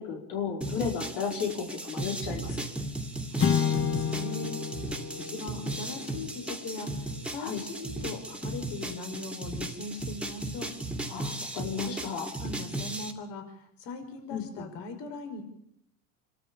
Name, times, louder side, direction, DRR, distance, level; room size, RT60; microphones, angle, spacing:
voice 1, 0.0-2.6 7.4-7.6 11.1-12.3 14.3-14.7, left 6 dB, 75° left, 1 dB, 5.2 m, -34 dB
sound 1, 0.6-13.1, right 1 dB, ahead, 2.4 m, -36 dB
voice 2, 3.3-4.5 5.3-10.7 11.8-11.9 12.4-15.4, left 3 dB, 60° left, 6 dB, 5.4 m, -40 dB
sound 2, 3.4-7.9, left 7 dB, 25° left, 1.9 m, -31 dB
27.0 x 13.0 x 8.9 m, 0.76 s
supercardioid pair, 115°, 46 cm